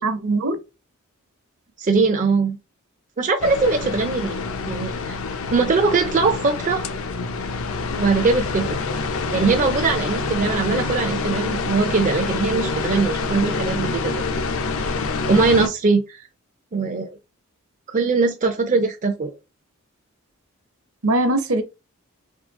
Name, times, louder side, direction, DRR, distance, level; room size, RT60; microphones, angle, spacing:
voice 1, 0.0-0.6 21.0-21.6, right 2 dB, 70° right, 1.0 m, -21 dB
voice 2, 1.8-2.6 3.2-4.4 4.7-5.2 5.5-6.8 8.0-8.8 9.3-14.2 15.3-16.3 16.7-17.1 17.9-19.3, right 4 dB, 35° right, 0.5 m, -21 dB
sound 1, 3.4-15.7, left 3 dB, 65° left, 0.6 m, -26 dB
3.7 x 3.2 x 3.6 m
head